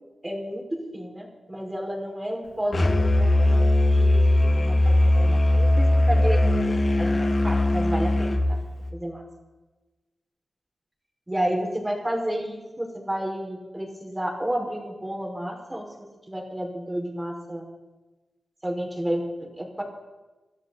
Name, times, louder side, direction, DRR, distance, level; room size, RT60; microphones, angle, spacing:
voice 1, 0.2-0.6 0.9-3.7 3.9-4.2 4.6-6.6 7.0-8.6 8.9-9.2 11.3-15.8 16.3-17.7 18.6-19.8, equal, 15° right, 1 dB, 5.2 m, -31 dB
Musical instrument, 2.7-8.4, left 1 dB, 50° left, 3.4 m, -20 dB
28.0 x 12.5 x 4.1 m, 1.2 s
cardioid pair, 55°, 0 cm